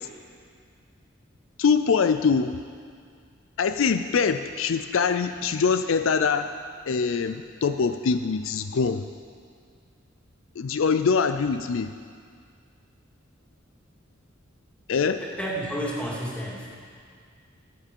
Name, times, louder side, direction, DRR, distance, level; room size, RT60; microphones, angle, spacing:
voice 1, 1.6-2.6 3.6-6.5 6.9-9.0 10.6-11.9 14.9-15.2, left 5 dB, 75° left, 9 dB, 0.4 m, -23 dB
voice 2, 15.2-16.7, equal, 5° left, -5 dB, 2.2 m, -31 dB
14.0 x 9.0 x 5.4 m, 2.1 s
head